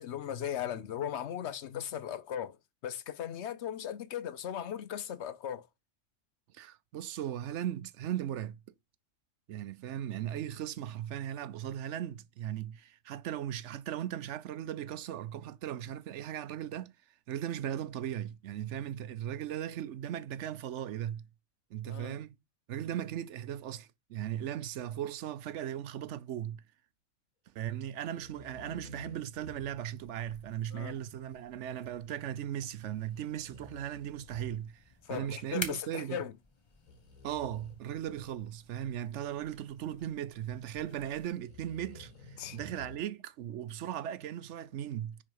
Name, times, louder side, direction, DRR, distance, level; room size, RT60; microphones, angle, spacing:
voice 1, 0.0-2.6 2.8-5.7 21.9-22.2 30.7-30.9 35.1-36.3 42.4-42.6, left 9 dB, 60° left, 0.9 m, -38 dB
voice 2, 6.5-8.6 9.5-16.9 17.3-21.2 21.7-22.3 22.7-26.6 27.5-34.8 35.1-36.2 37.2-45.2, right 11 dB, 70° right, 0.8 m, -37 dB
sound 1, 27.9-30.1 32.9-35.0 36.7-38.6 41.3-43.0, left 3 dB, 85° left, 1.9 m, -53 dB
sound 2, 29.4-41.3, left 3 dB, 25° left, 1.0 m, -50 dB
10.0 x 3.5 x 4.6 m
omnidirectional pair, 1.4 m